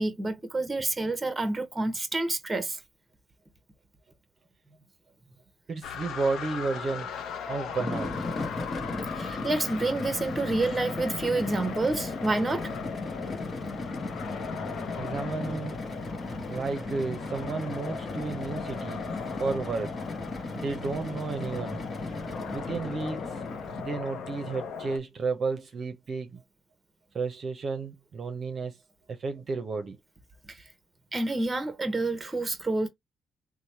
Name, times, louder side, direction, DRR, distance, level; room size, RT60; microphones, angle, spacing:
voice 1, 0.0-2.8 9.1-12.7 30.5-30.6 31.1-32.9, right 2 dB, 20° right, 0.9 m, -28 dB
voice 2, 5.7-7.1 7.5-8.1 15.0-15.8 16.5-19.1 19.4-19.9 20.5-21.8 22.5-23.4 23.8-26.4 27.1-28.8 29.1-30.0, right 4 dB, 45° right, 0.6 m, -32 dB
Lockheed Electra turboprop flyover, 5.8-25.0, left 6 dB, 80° left, 0.5 m, -39 dB
sound 1, 7.7-24.1, left 2 dB, 35° left, 0.8 m, -36 dB
3.0 x 2.1 x 4.1 m
cardioid pair, 90°, 0 cm